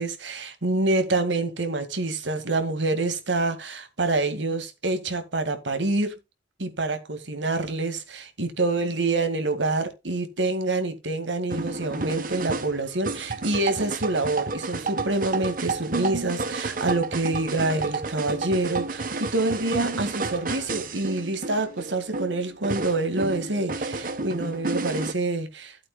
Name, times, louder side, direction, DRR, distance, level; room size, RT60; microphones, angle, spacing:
voice 1, 0.0-6.1 6.6-25.8, right 2 dB, 75° right, 2.1 m, -27 dB
sound 1, 11.5-25.1, right 3 dB, 45° right, 1.1 m, -31 dB
14.5 x 8.5 x 2.3 m
head